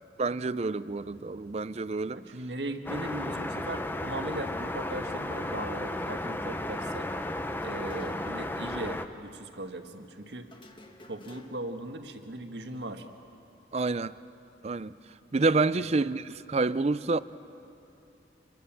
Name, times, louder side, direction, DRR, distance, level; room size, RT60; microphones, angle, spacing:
voice 1, 0.2-2.2 13.7-14.1 14.6-14.9 15.3-17.2, right 3 dB, 35° right, 0.5 m, -28 dB
voice 2, 2.1-7.1 7.6-10.5 11.1-13.1 15.7-15.8, right 1 dB, 75° right, 1.6 m, -38 dB
sound 1, 2.9-9.1, left 1 dB, 10° left, 0.8 m, -34 dB
sound 2, 7.6-8.5 8.7-8.8 10.5-11.8, left 1 dB, 25° left, 1.4 m, -53 dB
26.5 x 22.5 x 7.4 m
head